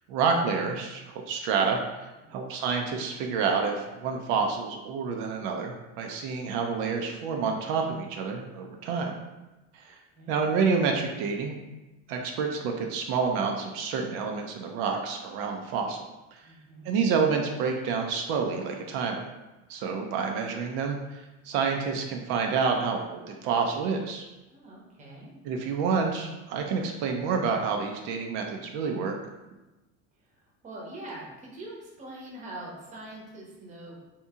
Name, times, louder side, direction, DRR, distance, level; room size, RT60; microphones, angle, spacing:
voice 1, 0.1-1.0 1.3-1.8 2.3-9.1 9.7-10.0 10.3-11.6 12.1-16.0 16.9-19.3 19.7-24.3 25.4-29.2, right 5 dB, 80° right, 2 dB, 0.5 m, -28 dB
voice 2, 16.4-16.9 24.5-25.3 30.3-33.9, right 1 dB, 25° right, -3 dB, 0.8 m, -43 dB
2.8 x 2.6 x 3.5 m, 1.0 s
cardioid pair, 155°, 30 cm